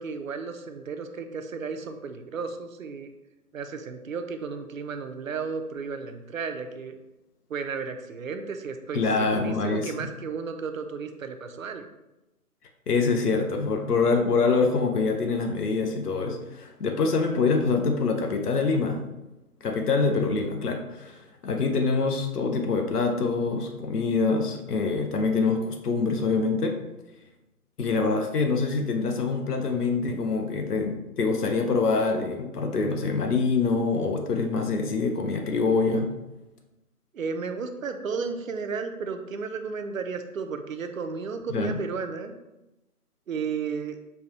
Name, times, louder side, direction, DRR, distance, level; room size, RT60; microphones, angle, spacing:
voice 1, 0.0-3.1 3.5-7.0 7.5-11.9 37.1-42.3 43.3-44.0, right 5 dB, 60° right, 7 dB, 0.5 m, -33 dB
voice 2, 8.9-9.9 12.9-19.0 19.6-26.7 27.8-36.1 41.5-41.8, left 4 dB, 75° left, 4 dB, 0.7 m, -25 dB
5.4 x 2.2 x 2.8 m, 0.98 s
figure-of-eight pair, 160°, 47 cm